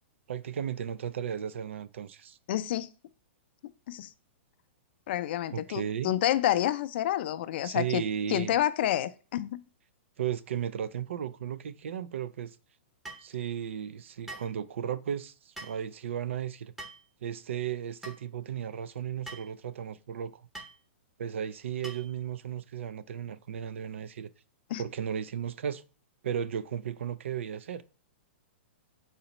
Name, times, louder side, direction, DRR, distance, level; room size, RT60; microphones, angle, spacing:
voice 1, 0.3-2.4 5.5-6.1 7.6-8.6 10.2-12.6 13.2-16.7 17.2-20.4 21.2-24.3 24.8-25.8 26.2-27.8, right 9 dB, 80° right, 0.4 m, -35 dB
voice 2, 2.5-2.9 3.9-4.1 5.1-8.0 8.3-9.6 24.7-24.8, left 12 dB, 55° left, 0.4 m, -28 dB
sound 1, 13.0-13.3 14.3-14.5 15.6-15.8 16.8-17.1 18.0-18.2 19.3-19.5 20.5-20.8 21.8-22.1, right 2 dB, 5° right, 0.7 m, -43 dB
4.1 x 4.0 x 2.9 m
hypercardioid pair, 140°, 7 cm